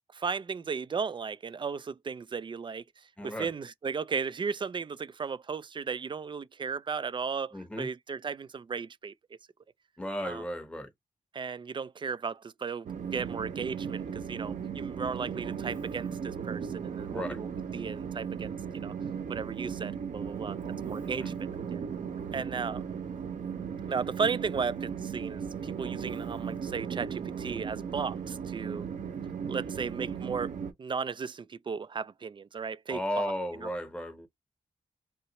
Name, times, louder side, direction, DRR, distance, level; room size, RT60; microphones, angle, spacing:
voice 1, 0.1-9.1 10.2-10.4 11.3-18.9 19.3-20.6 20.9-21.3 21.7-21.8 22.3-22.8 23.9-28.9 29.5-33.2 33.6-33.7, right 5 dB, 40° right, 0.4 m, -35 dB
voice 2, 3.2-3.5 7.5-7.9 10.0-10.9 17.1-17.4 21.0-21.3 32.9-34.3, equal, 10° left, 0.9 m, -35 dB
Train, 12.8-30.7, right 7 dB, 85° right, 1.0 m, -36 dB
5.5 x 2.0 x 2.9 m
wide cardioid pair, 125°, 13 cm